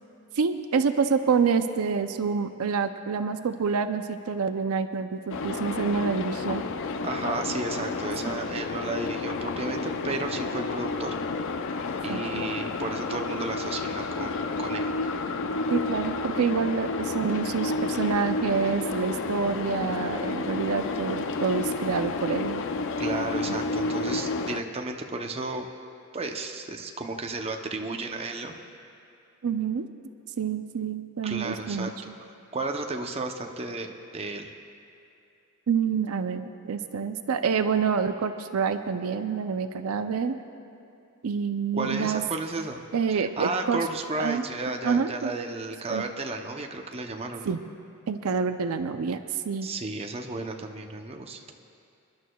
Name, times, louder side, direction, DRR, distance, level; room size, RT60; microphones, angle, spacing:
voice 1, 0.4-6.6 12.1-12.5 15.7-22.6 23.5-23.6 24.1-24.2 29.4-29.9 30.4-31.9 35.7-40.4 41.2-42.2 42.9-43.8 44.2-44.4 44.8-45.3 45.9-46.0 47.5-47.6 48.1-49.7, right 5 dB, 70° right, 9 dB, 0.5 m, -27 dB
sound 1, 5.3-24.6, left 3 dB, 55° left, 0.5 m, -31 dB
voice 2, 7.0-11.1 12.0-14.9 23.0-25.7 26.1-28.5 31.2-31.9 32.5-34.5 41.7-42.8 43.1-47.6 49.6-51.5, right 3 dB, 25° right, 4 dB, 0.6 m, -33 dB
29.0 x 11.0 x 2.3 m, 2.6 s
head